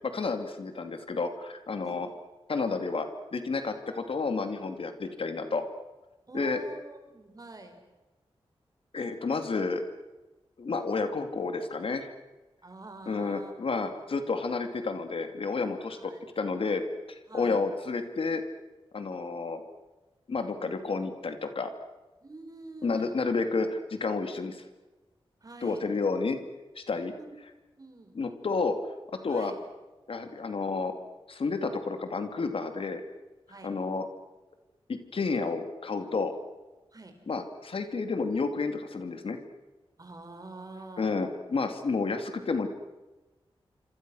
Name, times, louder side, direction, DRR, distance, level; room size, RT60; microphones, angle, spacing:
voice 1, 0.1-2.1 2.5-5.7 6.3-6.6 8.9-9.8 10.6-12.1 13.1-16.8 17.1-18.4 18.9-19.6 20.3-21.7 22.8-24.6 25.6-26.4 26.8-27.1 28.1-28.8 29.1-29.5 30.1-30.9 31.3-33.0 33.6-34.1 34.9-36.3 37.3-39.4 41.0-42.7, left 4 dB, 65° left, 7 dB, 2.7 m, -30 dB
voice 2, 6.3-7.8 12.6-13.5 15.9-16.3 17.3-17.7 22.2-23.1 25.4-25.9 27.1-27.3 27.8-28.1 29.3-29.5 33.5-33.7 36.9-37.1 40.0-41.1, right 2 dB, 40° right, 6 dB, 5.0 m, -46 dB
27.0 x 27.0 x 6.4 m, 1.1 s
wide cardioid pair, 95°, 10 cm